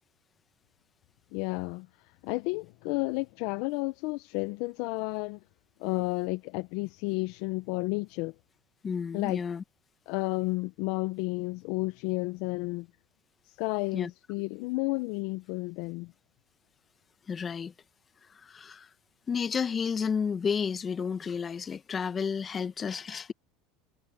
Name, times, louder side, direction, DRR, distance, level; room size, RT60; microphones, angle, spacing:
voice 1, 1.3-5.4 5.8-8.3 9.1-9.4 10.1-12.9 13.4-16.1, left 24 dB, 70° left, 0.7 m, -32 dB
voice 2, 8.8-9.6 13.9-14.1 17.3-17.7 18.4-18.9 19.3-23.3, left 6 dB, 30° left, 1.0 m, -31 dB
supercardioid pair, 105°, 0 cm